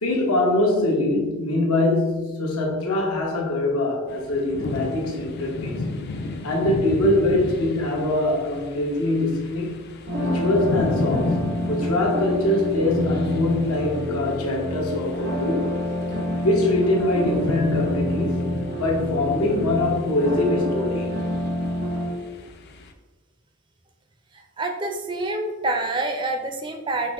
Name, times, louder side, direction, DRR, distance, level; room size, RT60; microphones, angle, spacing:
voice 1, 0.0-5.8 6.4-9.8 10.2-11.4 11.7-15.7 16.4-18.5 18.8-21.1, left 2 dB, 90° left, -1 dB, 1.0 m, -23 dB
sound 1, 4.1-22.9, left 2 dB, 45° left, 0.4 m, -34 dB
sound 2, 10.1-22.1, left 1 dB, 85° right, 1.2 m, -27 dB
voice 2, 24.3-27.1, right 2 dB, 20° right, 4 dB, 0.4 m, -27 dB
5.8 x 2.1 x 3.5 m, 1.2 s
head